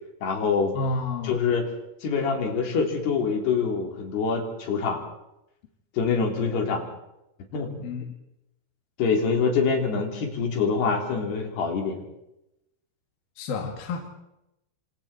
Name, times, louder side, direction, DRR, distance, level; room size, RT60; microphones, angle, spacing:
voice 1, 0.2-0.7 1.2-1.7 2.0-5.0 6.0-6.9 7.5-7.9 9.0-12.0, left 5 dB, 85° left, 3 dB, 5.7 m, -25 dB
voice 2, 0.7-1.4 7.8-8.1 13.4-14.0, left 3 dB, 70° left, 2 dB, 4.0 m, -30 dB
28.5 x 26.0 x 4.5 m, 0.87 s
omnidirectional pair, 4.6 m